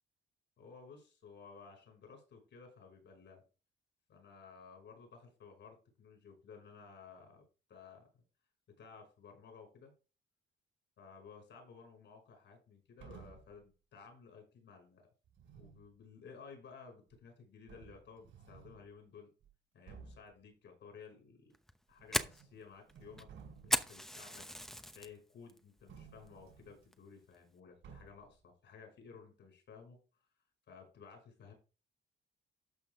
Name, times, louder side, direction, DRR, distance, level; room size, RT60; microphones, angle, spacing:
voice 1, 0.6-3.4 4.1-8.1 8.8-9.9 11.0-15.1 15.5-19.3 19.7-21.5 21.9-23.3 23.6-24.5 24.9-30.0 30.7-31.5, left 5 dB, 65° left, 3 dB, 5.6 m, -55 dB
sound 1, 13.0-13.6 15.3-15.9 17.1-17.2 17.7-18.9 19.4-19.5 19.9-20.3 21.9-22.6 22.9-24.0 25.9-26.9 27.8-28.4, right 6 dB, 75° right, 5.2 m, -56 dB
Fire, 21.5-25.1 25.5-25.9 26.3-26.4 26.9-27.3, equal, ahead, 0.9 m, -37 dB
12.5 x 5.8 x 3.6 m, 0.34 s
cardioid pair, 90°, 20 cm